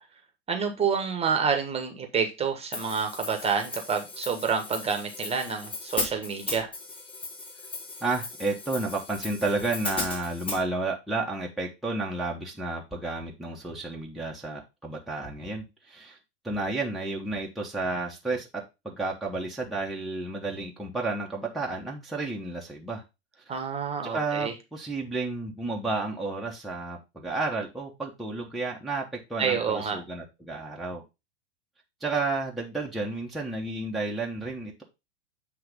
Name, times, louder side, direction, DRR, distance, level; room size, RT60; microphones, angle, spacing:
voice 1, 0.5-6.7 23.5-24.5 29.4-30.0, right 6 dB, 20° right, 5 dB, 1.3 m, -28 dB
Hi-hat, 2.7-10.6, left 3 dB, 15° left, 3.3 m, -37 dB
voice 2, 8.0-16.2 16.4-23.0 23.5-23.6 24.0-31.0 32.0-34.8, right 3 dB, ahead, -3 dB, 1.1 m, -31 dB
7.8 x 3.3 x 5.2 m, 0.25 s
hypercardioid pair, 100°, 34 cm